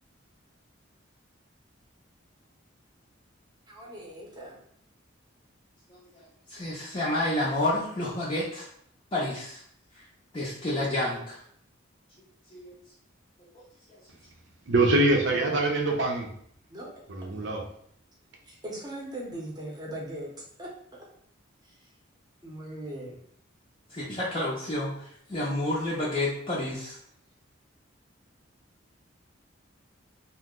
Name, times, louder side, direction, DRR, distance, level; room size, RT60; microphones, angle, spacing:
voice 1, 3.7-4.6 16.7-16.9 18.4-20.3 20.6-20.7 21.6-21.9 22.4-23.2, right 1 dB, 20° right, -3 dB, 0.7 m, -39 dB
voice 2, 6.5-8.7 9.1-9.6 9.9-10.0 10.3-11.4 12.5-12.7 13.5-13.6 23.9-27.0, left 1 dB, 25° left, -7 dB, 0.5 m, -30 dB
voice 3, 14.7-16.3 17.1-17.6, right 2 dB, 60° right, 1 dB, 0.6 m, -24 dB
2.8 x 2.1 x 3.6 m, 0.66 s
head